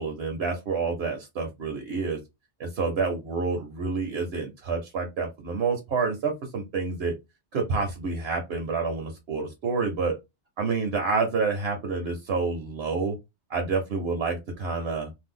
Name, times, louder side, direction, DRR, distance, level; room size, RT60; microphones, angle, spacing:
voice 1, 0.0-2.2 2.6-7.1 7.5-10.2 10.6-13.2 13.5-15.1, right 4 dB, 70° right, 1.0 m, -28 dB
2.7 x 2.2 x 3.7 m
omnidirectional pair, 1.2 m